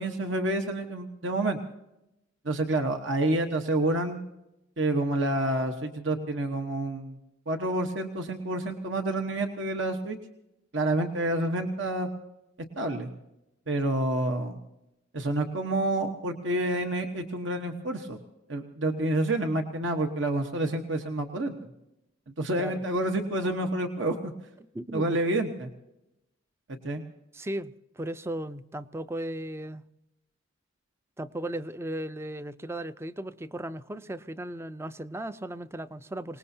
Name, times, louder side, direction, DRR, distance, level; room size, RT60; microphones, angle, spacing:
voice 1, 0.0-1.6 2.4-4.2 4.8-7.2 7.5-10.2 10.7-12.1 12.8-13.1 13.7-14.6 15.1-18.2 18.5-21.5 22.4-24.3 24.9-25.7 26.7-27.0, right 1 dB, 65° right, 4 dB, 1.2 m, -28 dB
voice 2, 24.7-25.2 27.3-29.8 31.2-36.4, right 1 dB, 15° right, 13 dB, 0.4 m, -36 dB
25.5 x 19.5 x 2.8 m, 0.88 s
head